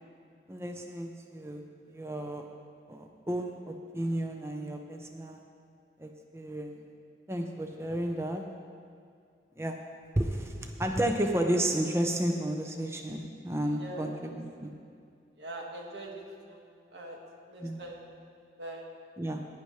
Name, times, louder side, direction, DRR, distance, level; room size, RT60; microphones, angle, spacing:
voice 1, 0.5-1.6 1.9-2.4 2.9-5.4 6.0-6.8 7.3-8.4 9.6-9.8 10.2-14.7 17.6-17.8 19.2-19.4, right 1 dB, 15° right, 3 dB, 0.6 m, -32 dB
voice 2, 13.7-14.4 15.4-16.6 16.9-17.2 17.5-18.0 18.6-18.9, right 1 dB, 75° right, -1 dB, 1.8 m, -43 dB
16.0 x 10.0 x 3.2 m, 2.3 s
head